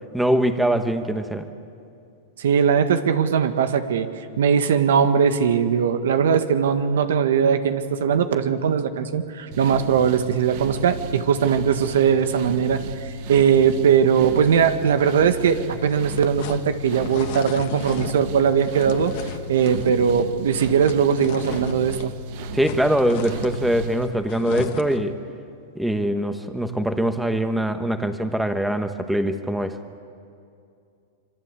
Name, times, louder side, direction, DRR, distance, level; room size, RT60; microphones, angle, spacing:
voice 1, 0.1-1.5 22.5-25.2 25.7-29.8, right 1 dB, 5° right, 8 dB, 1.4 m, -23 dB
voice 2, 2.4-4.1 4.4-19.1 19.5-22.1, right 7 dB, 80° right, 9 dB, 1.8 m, -20 dB
sound 1, 9.5-24.1, right 2 dB, 55° right, 1.3 m, -35 dB
sound 2, 15.8-22.1 22.4-25.1, left 10 dB, 55° left, 1.8 m, -36 dB
26.5 x 23.5 x 8.4 m, 2.5 s
hypercardioid pair, 140°, 0 cm